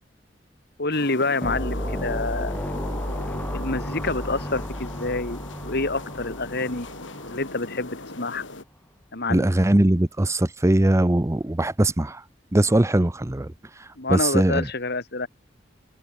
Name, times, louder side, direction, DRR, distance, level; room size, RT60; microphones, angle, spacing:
voice 1, 0.8-2.6 3.5-6.9 7.2-8.4 9.1-9.5 14.0-15.3, left 3 dB, 60° left, 3.4 m, -27 dB
sound 1, 0.9-8.6, left 2 dB, 85° left, 5.3 m, -39 dB
sound 2, 1.4-7.9, equal, 10° left, 4.1 m, -33 dB
voice 2, 9.3-12.2 12.5-13.5 14.1-14.7, right 1 dB, 15° right, 0.7 m, -20 dB
head